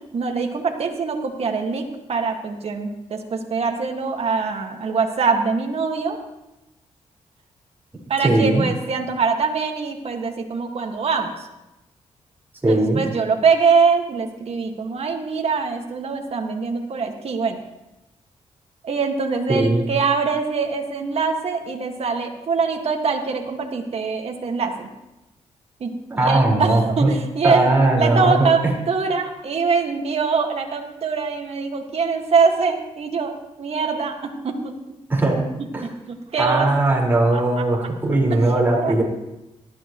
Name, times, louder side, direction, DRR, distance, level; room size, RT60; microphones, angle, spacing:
voice 1, 0.1-6.2 8.1-11.5 12.7-17.6 18.8-24.9 25.8-33.3 33.6-34.7 35.8-36.7 37.3-37.6 38.8-38.9, right 5 dB, 55° right, 3 dB, 1.9 m, -23 dB
voice 2, 8.2-8.6 12.6-13.0 19.5-19.8 26.1-27.1 27.4-28.7 35.1-35.5 35.7-35.8 36.4-39.0, right 2 dB, 20° right, -3 dB, 4.7 m, -19 dB
18.5 x 13.0 x 3.1 m, 0.95 s
cardioid pair, 85°, 12 cm